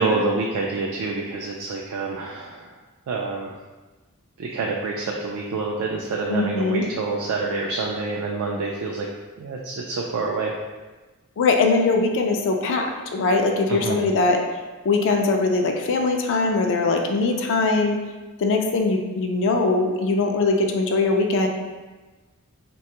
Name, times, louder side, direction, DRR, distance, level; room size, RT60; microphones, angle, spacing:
voice 1, 0.0-2.7 3.1-3.5 4.4-9.1 9.4-10.5 13.7-14.0, right 3 dB, 70° right, -1 dB, 0.3 m, -27 dB
voice 2, 6.3-6.8 11.4-14.4 14.8-18.0 18.4-21.5, left 3 dB, 60° left, 2 dB, 0.3 m, -21 dB
3.2 x 2.2 x 2.8 m, 1.2 s
head